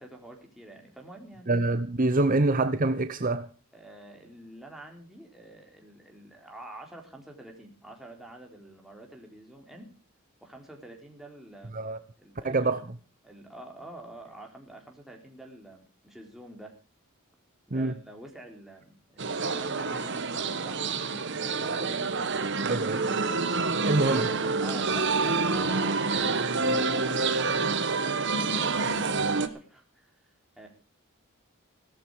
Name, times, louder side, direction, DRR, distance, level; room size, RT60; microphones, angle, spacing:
voice 1, 0.0-1.5 3.7-9.9 10.4-11.8 12.2-12.8 13.2-16.7 17.7-22.7 24.0-30.7, right 1 dB, ahead, 3.9 m, -48 dB
voice 2, 1.5-3.5 11.7-12.0 12.4-12.9 17.7-17.9 22.7-23.0 23.9-24.3, right 2 dB, 40° right, 0.9 m, -25 dB
sound 1, 19.2-29.5, right 4 dB, 55° right, 1.4 m, -27 dB
17.0 x 13.0 x 4.9 m
head